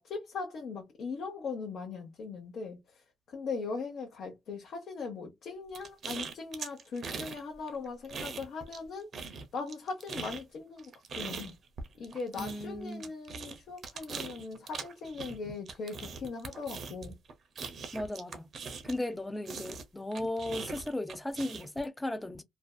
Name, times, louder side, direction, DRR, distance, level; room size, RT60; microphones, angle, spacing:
voice 1, 0.0-2.8 3.3-10.9 11.2-11.6 12.0-17.1, left 4 dB, 60° left, 0.8 m, -39 dB
sound 1, 5.7-7.4 7.7-8.9 9.1-19.1 19.5-21.8, right 5 dB, 50° right, 0.6 m, -41 dB
voice 2, 12.4-13.1 17.9-18.5 18.8-22.4, left 1 dB, 10° left, 0.4 m, -36 dB
2.6 x 2.2 x 2.3 m
cardioid pair, 110°, 0 cm